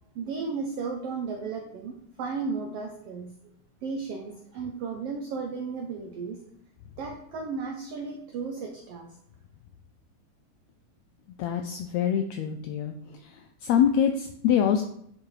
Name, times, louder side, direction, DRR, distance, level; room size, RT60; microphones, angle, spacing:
voice 1, 0.1-3.3 3.8-6.4 7.0-9.1, right 4 dB, 80° right, 2 dB, 1.3 m, -34 dB
voice 2, 11.4-12.9 13.6-14.8, left 9 dB, 85° left, 5 dB, 1.5 m, -24 dB
9.7 x 4.7 x 3.1 m, 0.70 s
omnidirectional pair, 3.6 m